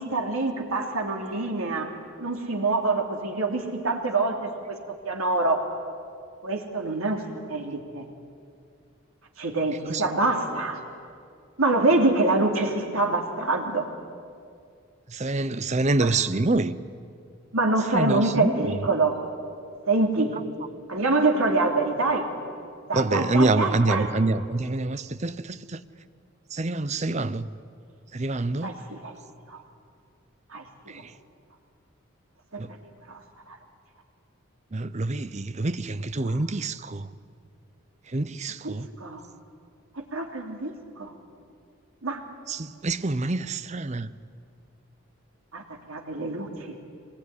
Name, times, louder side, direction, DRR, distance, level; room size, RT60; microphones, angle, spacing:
voice 1, 0.0-1.9 2.2-4.8 5.0-5.6 6.4-7.2 7.5-8.0 9.4-10.8 11.6-13.9 16.0-16.1 17.5-19.2 19.9-20.4 20.9-22.3 22.8-24.1 28.6-29.1 29.5-29.6 30.5-31.0 32.5-32.6 33.1-33.2 33.5-33.6 38.6-39.2 39.9-41.1 42.0-42.2 45.5-46.8, right 2 dB, 85° right, 2 dB, 3.0 m, -25 dB
voice 2, 15.1-16.8 17.9-18.7 22.9-25.8 26.5-27.5 28.1-28.7 30.9-31.1 32.6-32.7 34.7-37.1 38.1-38.9 42.5-44.1, right 2 dB, 30° right, 13 dB, 0.6 m, -26 dB
23.5 x 20.5 x 9.8 m, 2.3 s
head